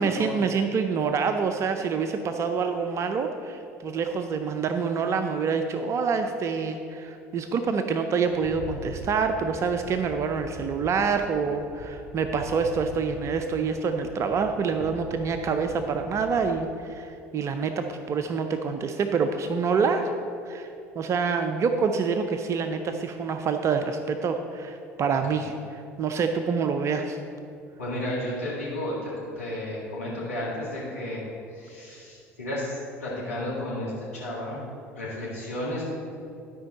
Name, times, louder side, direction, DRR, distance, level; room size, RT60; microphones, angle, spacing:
voice 1, 0.0-20.2 20.5-20.7 21.0-27.2, right 5 dB, 40° right, 7 dB, 0.5 m, -26 dB
Rattle, 8.3-16.7, left 2 dB, 50° left, 1.7 m, -43 dB
voice 2, 27.8-31.2 31.5-34.6 35.0-35.8, left 1 dB, 85° left, -7 dB, 1.8 m, -33 dB
12.0 x 5.2 x 4.0 m, 2.6 s
figure-of-eight pair, 65°, 8 cm